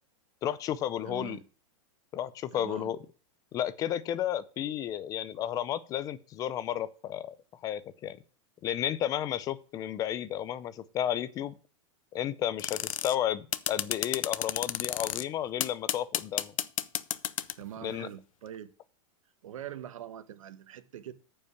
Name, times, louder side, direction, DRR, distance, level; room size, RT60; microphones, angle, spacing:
voice 1, 0.4-1.4 2.1-3.0 3.5-7.4 7.6-8.2 8.6-11.6 12.1-16.5 17.8-18.1, left 11 dB, 20° left, 0.5 m, -32 dB
voice 2, 1.0-1.4 2.5-2.9 17.6-18.7 19.4-21.1, right 11 dB, 85° right, 1.2 m, -43 dB
sound 1, 12.6-13.2 13.5-15.2 15.6-17.6, left 11 dB, 90° left, 0.7 m, -31 dB
9.3 x 5.4 x 7.1 m
supercardioid pair, 155°, 17 cm